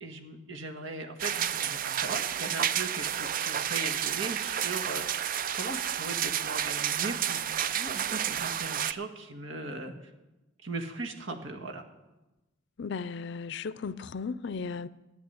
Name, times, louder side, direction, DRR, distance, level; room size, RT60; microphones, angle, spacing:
voice 1, 0.0-9.9 10.6-11.8, right 3 dB, 80° right, 1.6 m, -39 dB
sound 1, 1.2-8.9, right 9 dB, 45° right, 0.4 m, -31 dB
voice 2, 12.8-14.9, left 5 dB, 65° left, 0.5 m, -35 dB
13.0 x 9.2 x 7.9 m
head